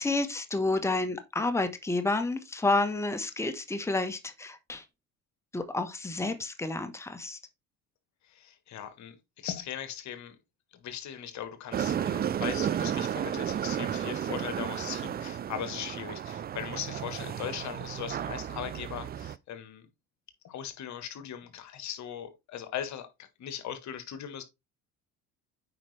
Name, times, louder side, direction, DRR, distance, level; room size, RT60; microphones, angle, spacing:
voice 1, 0.0-4.8 5.5-7.4, left 2 dB, 10° left, 1.3 m, -30 dB
voice 2, 8.3-10.4 10.7-19.9 20.4-24.4, left 10 dB, 60° left, 1.5 m, -39 dB
sound 1, 11.7-19.4, right 9 dB, 30° right, 0.4 m, -33 dB
8.9 x 5.0 x 3.3 m
supercardioid pair, 85°, 32 cm